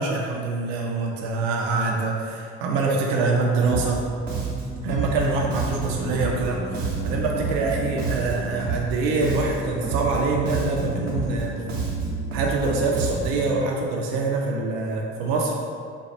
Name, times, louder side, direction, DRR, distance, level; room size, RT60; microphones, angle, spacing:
voice 1, 0.0-4.0 4.8-11.6 12.3-15.5, right 3 dB, 60° right, -1 dB, 0.6 m, -25 dB
Bass guitar, 3.6-4.0 4.3-8.9 9.2-13.5, right 4 dB, 85° right, 0.8 m, -29 dB
sound 1, 4.4-13.1, left 1 dB, 20° left, 0.6 m, -39 dB
4.2 x 2.3 x 4.4 m, 2.3 s
figure-of-eight pair, 55°, 36 cm